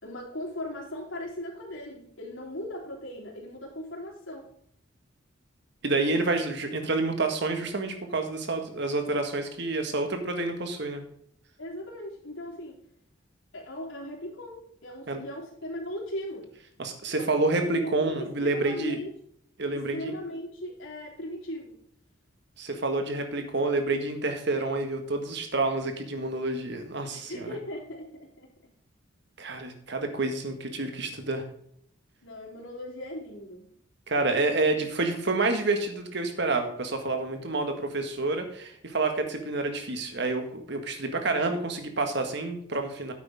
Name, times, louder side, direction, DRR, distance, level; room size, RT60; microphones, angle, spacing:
voice 1, 0.0-4.5 11.6-12.7 13.5-16.5 17.2-19.1 19.7-21.8 27.1-28.5 32.2-33.7, left 1 dB, 75° left, -3 dB, 3.7 m, -38 dB
voice 2, 5.8-11.0 15.1-15.2 16.8-19.0 19.6-20.2 22.6-27.6 29.4-31.4 34.1-43.1, right 3 dB, 60° right, 6 dB, 1.7 m, -28 dB
9.9 x 8.2 x 3.6 m, 0.69 s
head